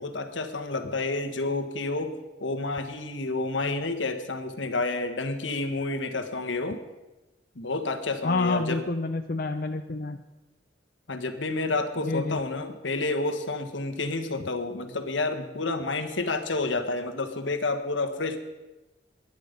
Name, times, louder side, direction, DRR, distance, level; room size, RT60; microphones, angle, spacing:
voice 1, 0.0-6.8 7.5-8.8 11.1-18.4, left 3 dB, 85° left, 8 dB, 1.5 m, -30 dB
voice 2, 8.2-10.2 12.0-12.4, left 3 dB, 50° left, 6 dB, 0.6 m, -28 dB
22.0 x 10.5 x 5.3 m, 1.1 s
head